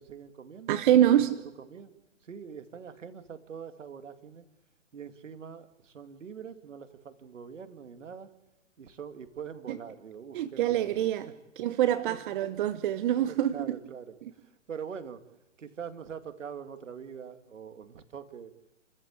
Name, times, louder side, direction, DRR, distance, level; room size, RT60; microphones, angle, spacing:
voice 1, 0.0-1.9 2.2-4.4 4.9-8.3 8.8-11.0 12.1-12.2 13.2-15.2 15.6-18.5, right 7 dB, 70° right, 2.3 m, -44 dB
voice 2, 0.7-1.3 9.7-9.8 10.3-11.3 11.6-13.5, right 11 dB, 40° right, 1.0 m, -25 dB
29.5 x 14.0 x 8.5 m
hypercardioid pair, 130°, 38 cm